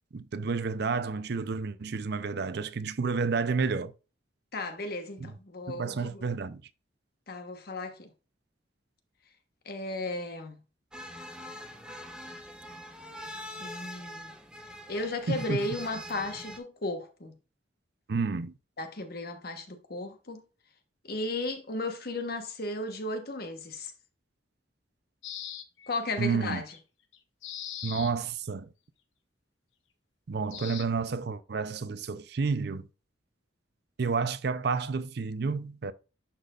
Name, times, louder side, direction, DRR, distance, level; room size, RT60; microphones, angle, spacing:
voice 1, 0.1-3.9 5.2-5.3 5.7-6.6 15.3-15.7 18.1-18.5 26.2-26.6 27.8-28.7 30.3-32.9 34.0-35.9, right 4 dB, 60° right, 0.5 m, -30 dB
voice 2, 4.5-6.2 7.3-8.1 9.6-10.6 13.6-14.3 14.9-17.3 18.8-20.4 21.0-23.9 25.9-26.7, left 2 dB, 55° left, 1.1 m, -35 dB
sound 1, 10.9-16.6, left 1 dB, 5° right, 0.7 m, -43 dB
sound 2, 25.2-25.9 26.5-26.8 27.1-28.1 30.5-30.8, left 10 dB, 80° left, 0.9 m, -40 dB
11.5 x 4.2 x 2.4 m
head